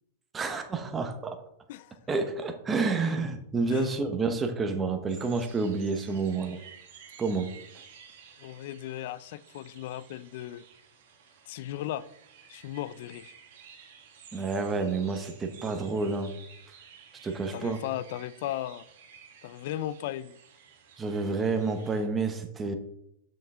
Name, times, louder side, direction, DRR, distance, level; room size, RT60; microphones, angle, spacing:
voice 1, 0.3-1.4 2.1-6.6 7.2-7.5 14.3-16.3 17.2-17.8 21.0-22.7, right 4 dB, 15° right, 0.9 m, -29 dB
sound 1, 5.1-22.1, right 7 dB, 65° right, 1.7 m, -53 dB
voice 2, 8.4-10.6 11.5-12.1 12.5-13.3 17.5-18.9 19.4-20.4, left 13 dB, 60° left, 0.4 m, -36 dB
6.8 x 6.3 x 3.7 m
hypercardioid pair, 140°, 0 cm